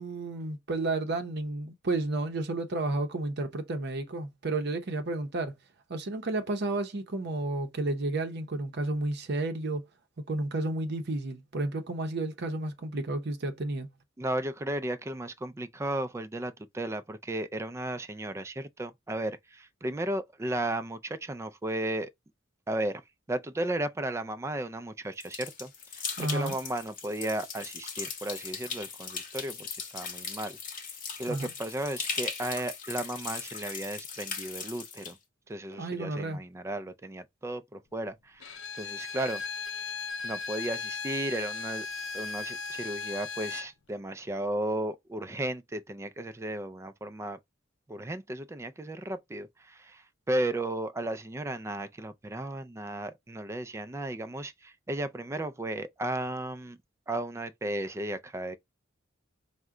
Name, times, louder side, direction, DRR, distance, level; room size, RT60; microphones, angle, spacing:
voice 1, 0.0-5.5 5.9-9.8 10.3-13.9 26.2-26.5 31.3-31.5 35.7-36.4, right 2 dB, 60° right, 0.7 m, -31 dB
voice 2, 14.2-22.1 22.7-23.0 23.3-30.6 31.2-35.2 35.5-39.4 40.2-41.9 42.1-47.4 47.9-56.8 57.1-58.6, right 1 dB, 15° right, 0.3 m, -34 dB
sound 1, 25.2-35.1, left 5 dB, 45° left, 1.0 m, -38 dB
Bowed string instrument, 38.4-43.7, left 5 dB, 70° left, 0.5 m, -37 dB
4.6 x 2.1 x 3.6 m
head